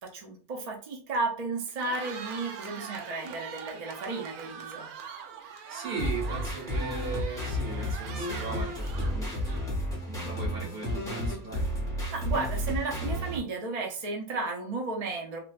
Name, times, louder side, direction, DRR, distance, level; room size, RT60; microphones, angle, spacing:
voice 1, 0.0-4.9 12.1-15.4, right 3 dB, 60° right, 1 dB, 0.4 m, -33 dB
Cheering, 1.6-9.9, right 6 dB, 90° right, 1.1 m, -42 dB
voice 2, 5.4-9.6 10.0-11.6, right 4 dB, 40° right, -4 dB, 1.9 m, -38 dB
sound 1, 6.0-13.4, equal, 5° left, 0.9 m, -32 dB
3.2 x 2.5 x 2.4 m, 0.42 s
omnidirectional pair, 1.5 m